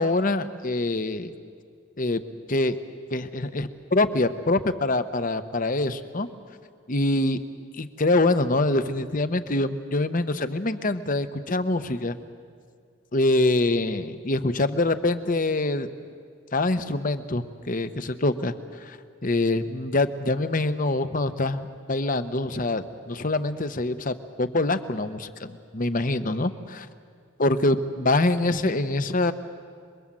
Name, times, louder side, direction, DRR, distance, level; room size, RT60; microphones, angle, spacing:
voice 1, 0.0-1.3 2.0-2.2 2.5-2.8 3.1-6.3 6.9-7.4 7.8-12.2 13.1-15.9 16.5-18.5 18.8-19.0 19.2-26.5 27.4-29.3, left 2 dB, 40° left, 10 dB, 1.0 m, -25 dB
27.0 x 22.0 x 7.6 m, 2.1 s
head